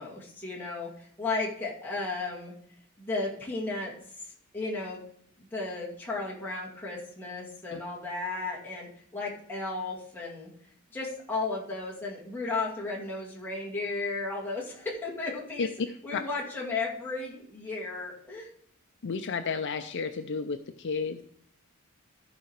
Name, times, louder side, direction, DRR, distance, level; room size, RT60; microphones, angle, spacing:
voice 1, 0.0-2.5 3.0-4.3 4.5-5.0 5.4-10.5 10.9-15.7 16.0-18.5, left 3 dB, 10° left, -5 dB, 2.2 m, -34 dB
voice 2, 19.0-21.2, left 5 dB, 55° left, 8 dB, 0.5 m, -32 dB
14.5 x 4.9 x 4.6 m, 0.67 s
head